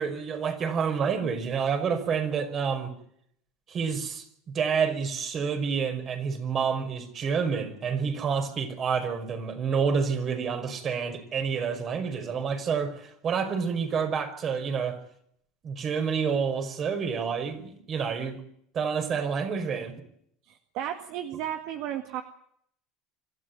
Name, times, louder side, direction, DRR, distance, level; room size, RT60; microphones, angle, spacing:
voice 1, 0.0-2.9 3.7-15.0 15.6-18.4 18.7-20.0, right 6 dB, 40° right, 5.4 m, -28 dB
voice 2, 20.5-22.2, right 11 dB, 65° right, 1.9 m, -34 dB
25.5 x 13.5 x 9.5 m
hypercardioid pair, 90°, 0 cm